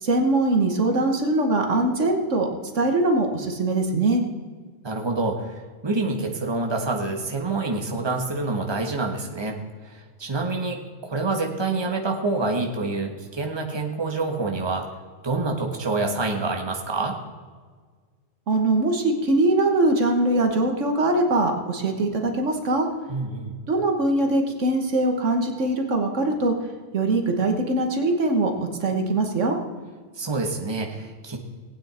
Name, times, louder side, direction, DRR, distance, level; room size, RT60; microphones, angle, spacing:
voice 1, 0.0-2.5 2.7-4.2 18.5-22.9 23.7-26.5 26.9-29.6, right 2 dB, 75° right, 4 dB, 1.7 m, -22 dB
voice 2, 4.8-9.6 9.8-14.9 15.2-17.2 23.1-23.5 30.2-31.4, right 3 dB, 20° right, 1 dB, 1.4 m, -27 dB
19.0 x 9.0 x 4.3 m, 1.5 s
omnidirectional pair, 1.3 m